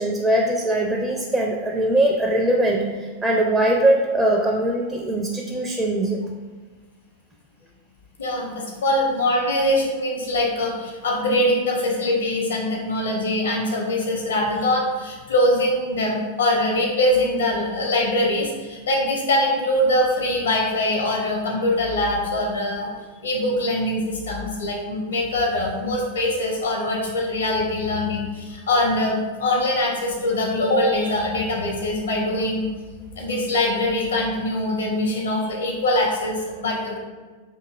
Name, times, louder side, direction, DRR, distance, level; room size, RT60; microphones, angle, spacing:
voice 1, 0.0-6.2, right 1 dB, 10° right, -1 dB, 0.4 m, -21 dB
voice 2, 8.2-22.9 23.2-32.7 33.2-37.0, left 1 dB, 65° left, -1 dB, 0.8 m, -23 dB
4.7 x 2.7 x 2.4 m, 1.4 s
figure-of-eight pair, 90°, 0 cm